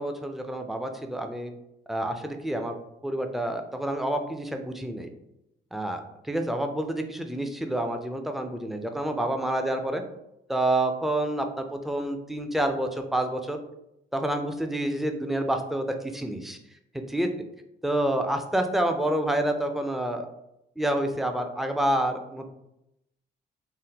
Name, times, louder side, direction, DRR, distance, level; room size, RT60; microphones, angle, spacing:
voice 1, 0.0-1.5 1.9-2.7 3.0-5.1 5.7-6.0 6.3-10.0 10.5-13.6 14.1-16.6 17.1-17.3 17.8-20.3 20.8-22.5, right 1 dB, ahead, 5 dB, 0.3 m, -28 dB
3.6 x 2.0 x 2.8 m, 0.84 s
cardioid pair, 90°, 20 cm